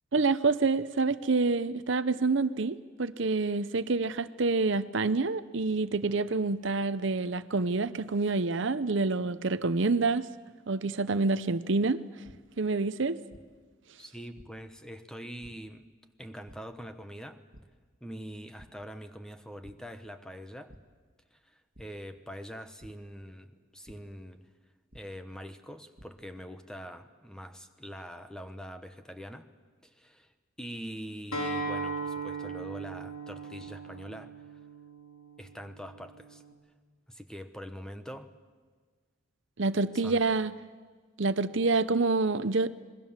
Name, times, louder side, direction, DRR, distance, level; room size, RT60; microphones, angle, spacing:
voice 1, 0.1-10.3 10.7-12.0 12.6-13.2 39.6-40.5 41.2-42.7, right 3 dB, 60° right, 14 dB, 0.7 m, -27 dB
sound 1, 12.2-12.3 13.3-13.4 14.4-14.5 15.4-15.5 16.5-16.6 17.5-17.6 18.1-18.3 18.6-18.7 19.6-19.7 20.7-20.8 21.7-21.8 22.8-22.9 23.9-24.0 24.9-25.0 25.7-26.1, equal, 45° right, 2.0 m, -51 dB
voice 2, 14.0-15.8 16.2-17.4 18.0-20.7 21.3-24.4 24.9-29.5 29.8-34.4 35.4-36.4 37.1-38.3 39.9-40.2, equal, 5° left, 8 dB, 1.1 m, -44 dB
Acoustic guitar, 31.3-36.5, right 3 dB, 85° left, 4.4 m, -38 dB
27.0 x 21.0 x 7.4 m, 1.5 s
head